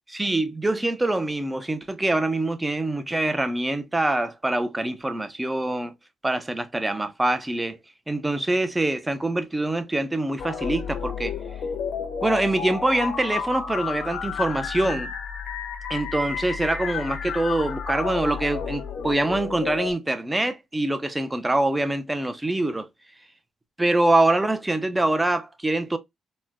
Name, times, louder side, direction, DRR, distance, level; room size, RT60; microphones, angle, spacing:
voice 1, 0.1-5.9 6.2-7.8 8.1-11.3 12.2-15.1 15.9-22.9 23.8-26.0, right 2 dB, 15° right, 0.5 m, -24 dB
sound 1, 10.4-19.9, left 6 dB, 70° left, 0.8 m, -31 dB
4.1 x 2.1 x 2.4 m
cardioid pair, 90°, 0 cm